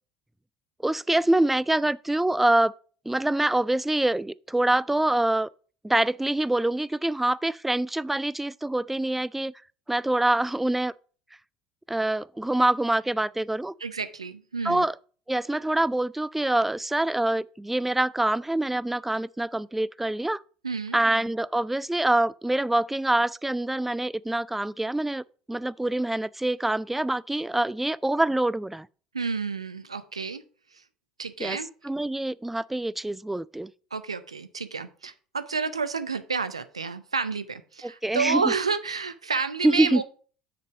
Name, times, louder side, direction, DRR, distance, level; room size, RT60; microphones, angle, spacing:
voice 1, 0.8-2.7 3.1-5.5 5.8-9.5 9.9-10.9 11.9-13.7 14.6-14.9 15.3-20.4 20.9-28.9 31.4-31.6 31.8-33.7 37.8-38.4 39.6-40.0, right 1 dB, 5° right, 0.3 m, -25 dB
voice 2, 13.8-14.8 20.6-21.0 29.1-30.4 31.2-31.7 33.9-40.0, right 5 dB, 85° right, 0.5 m, -30 dB
6.6 x 5.2 x 6.0 m
figure-of-eight pair, 65°, 3 cm